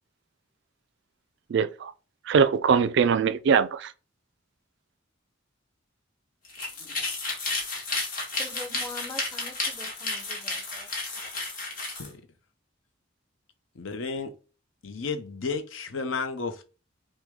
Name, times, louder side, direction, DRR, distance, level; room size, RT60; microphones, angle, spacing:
voice 1, 1.5-1.9 2.3-3.9, right 6 dB, 60° right, 0.3 m, -22 dB
sound 1, 6.4-12.1, left 3 dB, 45° left, 1.5 m, -32 dB
voice 2, 8.4-11.2, left 2 dB, 15° left, 0.8 m, -43 dB
voice 3, 13.8-14.3 14.8-16.6, left 4 dB, 75° left, 0.7 m, -32 dB
6.1 x 2.2 x 3.6 m
head